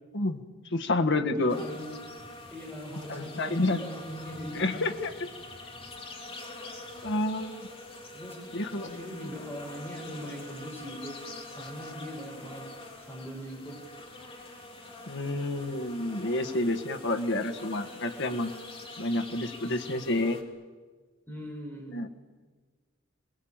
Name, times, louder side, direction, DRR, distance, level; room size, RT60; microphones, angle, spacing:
voice 1, 0.7-1.6 3.1-3.8 4.5-5.1 7.0-7.7 8.5-8.9 15.1-18.5 19.0-20.4 21.9-22.1, left 2 dB, 60° left, 7 dB, 1.6 m, -29 dB
voice 2, 1.3-2.0 2.5-4.8 8.1-8.4 8.7-11.2 11.5-12.6 13.0-13.8 21.3-22.0, equal, 10° left, -1 dB, 5.1 m, -40 dB
sound 1, 1.5-20.4, left 2 dB, 30° left, 3.2 m, -45 dB
27.5 x 20.5 x 8.9 m, 1.4 s
head